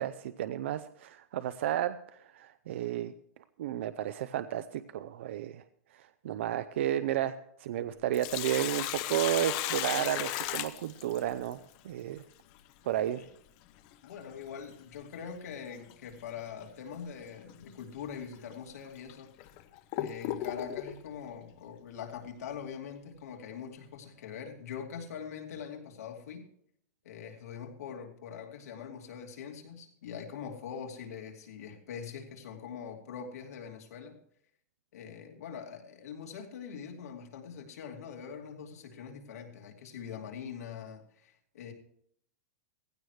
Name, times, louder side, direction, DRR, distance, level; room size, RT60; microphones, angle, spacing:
voice 1, 0.0-3.1 3.6-5.6 5.9-7.3 7.6-11.6 11.8-12.2 12.9-13.2, right 12 dB, 50° right, 12 dB, 0.5 m, -32 dB
Sink (filling or washing), 7.9-11.5 13.9-14.0 15.9-16.1 16.6-16.7 17.5-17.6 18.3-18.4 19.1-21.0, left 13 dB, 30° left, 0.6 m, -35 dB
voice 2, 14.0-19.3 20.0-26.5 27.0-34.2 34.9-41.7, left 7 dB, 80° left, 1 dB, 2.6 m, -43 dB
17.0 x 15.5 x 3.2 m, 0.69 s
supercardioid pair, 180°, 8 cm